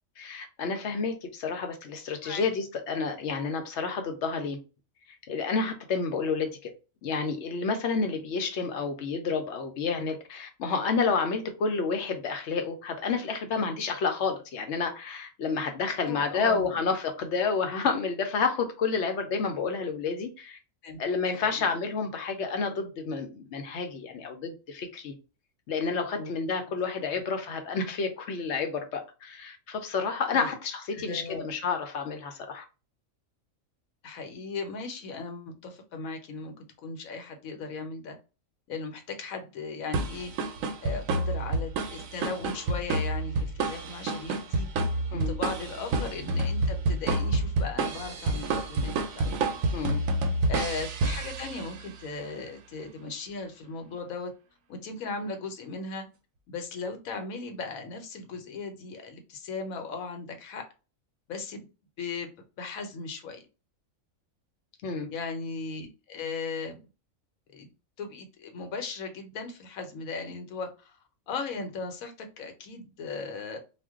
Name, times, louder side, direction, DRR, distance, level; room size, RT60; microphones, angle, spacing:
voice 1, 0.2-4.6 5.3-6.7 7.0-20.6 21.0-25.1 25.7-32.6 45.1-45.3 49.7-50.0 64.8-65.1, left 5 dB, 65° left, 0.8 m, -30 dB
voice 2, 16.0-16.8 20.8-21.0 21.3-21.7 26.1-26.3 30.3-30.5 30.9-31.5 34.0-36.5 36.8-38.2 38.7-40.3 40.8-44.7 45.1-49.4 50.5-54.3 54.7-56.1 56.5-60.7 61.3-61.7 62.0-62.3 62.6-63.4 65.1-66.8 67.5-67.7 68.0-71.0 71.3-73.6, left 4 dB, 85° left, 1.1 m, -37 dB
sound 1, 39.9-51.9, right 2 dB, 80° right, 1.0 m, -29 dB
2.5 x 2.2 x 3.5 m
omnidirectional pair, 1.4 m